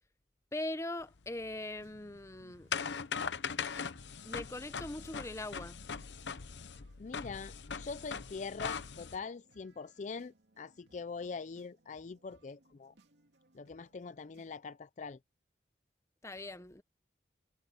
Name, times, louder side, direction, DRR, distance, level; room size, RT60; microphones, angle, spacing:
voice 1, 0.5-2.7 4.2-5.8 16.2-16.8, left 1 dB, 15° left, 0.8 m, -41 dB
sound 1, 1.1-9.2, left 6 dB, 85° left, 0.8 m, -40 dB
sound 2, 1.8-14.6, right 2 dB, 80° right, 2.5 m, -67 dB
voice 2, 7.0-12.9 13.5-15.2, left 4 dB, 45° left, 0.4 m, -43 dB
head